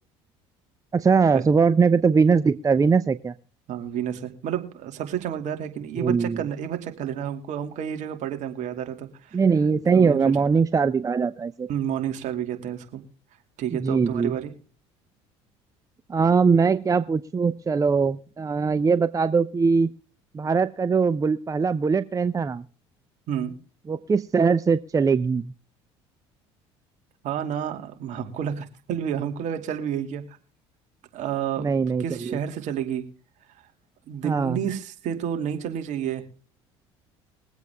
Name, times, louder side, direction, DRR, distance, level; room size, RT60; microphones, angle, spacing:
voice 1, 0.9-3.3 6.0-6.4 9.3-11.7 13.7-14.3 16.1-19.9 20.3-22.6 23.9-25.5 31.6-32.4 34.2-34.6, right 5 dB, 25° right, 13 dB, 0.7 m, -21 dB
voice 2, 3.7-9.4 9.9-10.2 11.7-13.0 13.6-14.5 23.3-23.5 27.2-30.2 31.1-31.7 32.0-33.1 34.1-36.2, right 9 dB, 60° right, 6 dB, 2.4 m, -30 dB
22.0 x 8.2 x 3.5 m, 0.36 s
hypercardioid pair, 70°, 14 cm